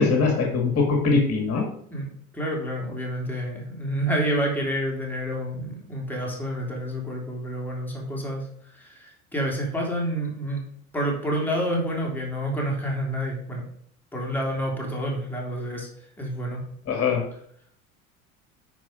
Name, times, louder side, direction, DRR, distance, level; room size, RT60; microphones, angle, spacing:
voice 1, 0.0-1.7 16.9-17.2, left 4 dB, 35° left, 3 dB, 2.0 m, -21 dB
voice 2, 1.9-8.5 8.7-10.6 10.9-13.6 14.1-15.9 16.2-16.6, equal, 5° left, -2 dB, 3.1 m, -28 dB
9.0 x 4.8 x 5.1 m, 0.67 s
hypercardioid pair, 80°, 42 cm